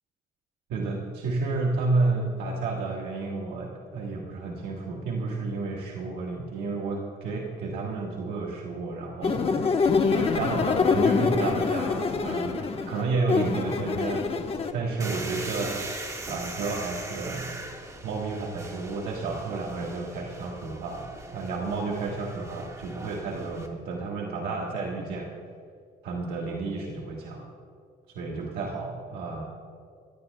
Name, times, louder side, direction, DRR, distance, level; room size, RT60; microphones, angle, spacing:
voice 1, 0.7-9.7 10.1-14.2 14.7-15.9 16.3-17.5 18.0-25.3 26.0-27.5 28.1-29.4, right 3 dB, 75° right, -1 dB, 1.5 m, -31 dB
sound 1, 9.2-14.7, left 5 dB, 35° left, 1.0 m, -25 dB
sound 2, 15.0-23.7, right 2 dB, 20° right, 1.5 m, -40 dB
22.0 x 16.5 x 2.2 m, 2.3 s
cardioid pair, 110°, 17 cm